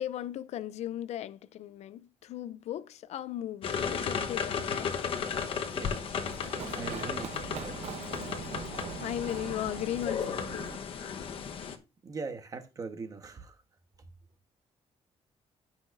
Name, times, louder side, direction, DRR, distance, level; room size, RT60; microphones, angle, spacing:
voice 1, 0.0-4.9 6.9-7.0 9.0-10.7, left 12 dB, 70° left, 0.5 m, -37 dB
sound 1, 3.6-11.7, left 6 dB, 50° left, 1.1 m, -35 dB
Run, 5.1-10.8, right 9 dB, 70° right, 0.7 m, -43 dB
voice 2, 6.7-7.8 12.0-13.6, right 4 dB, 30° right, 1.1 m, -41 dB
16.5 x 5.7 x 2.6 m
cardioid pair, 175°, 12 cm